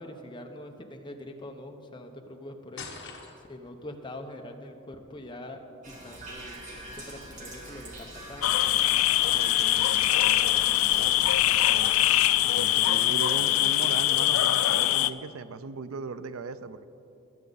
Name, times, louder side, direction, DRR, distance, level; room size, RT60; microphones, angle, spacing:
voice 1, 0.0-2.9 3.5-5.6 5.9-8.6, left 1 dB, 25° left, 4 dB, 0.9 m, -43 dB
sound 1, 2.8-3.7, left 4 dB, 60° left, 1.7 m, -42 dB
sound 2, 5.8-12.3, right 1 dB, 40° right, 2.1 m, -44 dB
sound 3, 8.4-15.1, left 14 dB, 80° left, 0.4 m, -23 dB
voice 2, 9.3-11.9 12.4-16.8, right 4 dB, 85° right, 13 dB, 0.5 m, -39 dB
21.0 x 8.4 x 4.1 m, 2.7 s
head